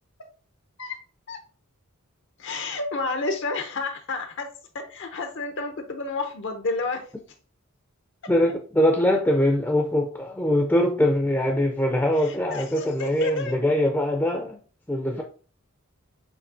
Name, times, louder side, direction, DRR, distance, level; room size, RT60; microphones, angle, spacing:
voice 1, 2.4-7.1 12.2-13.6, left 3 dB, 55° left, 0.6 m, -31 dB
voice 2, 8.3-14.6 14.9-15.2, left 1 dB, 10° left, 0.5 m, -22 dB
7.0 x 2.8 x 2.7 m
head